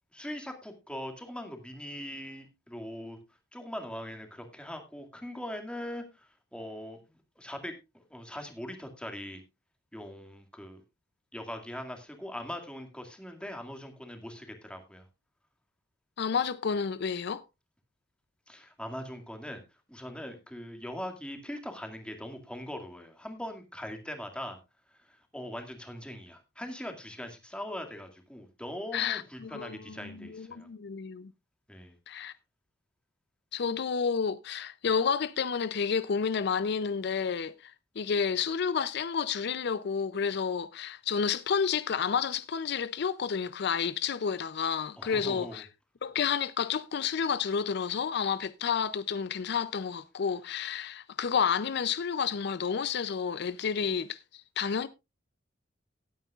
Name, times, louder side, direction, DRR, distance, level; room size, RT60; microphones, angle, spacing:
voice 1, 0.1-3.2 3.5-7.0 7.4-9.4 9.9-10.8 11.3-15.0 18.5-19.6 19.9-24.6 25.1-30.7 31.7-31.9 45.0-45.6, equal, 5° left, 2.1 m, -41 dB
voice 2, 16.2-17.4 28.9-31.3 32.1-32.3 33.5-45.7 46.0-54.9, left 6 dB, 60° left, 0.5 m, -30 dB
18.5 x 9.1 x 2.4 m
head